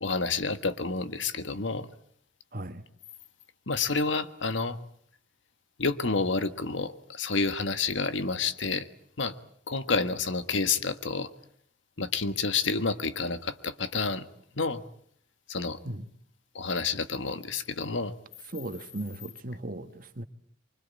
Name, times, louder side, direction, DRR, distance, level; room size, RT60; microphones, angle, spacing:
voice 1, 0.0-1.9 3.7-4.8 5.8-8.9 9.2-9.3 9.7-11.3 12.0-14.3 14.5-14.8 15.5-15.8 16.5-18.1, left 4 dB, 80° left, 1.5 m, -29 dB
voice 2, 2.5-2.8 15.8-16.0 18.5-20.2, right 1 dB, 45° right, 1.6 m, -37 dB
25.0 x 24.5 x 8.6 m
head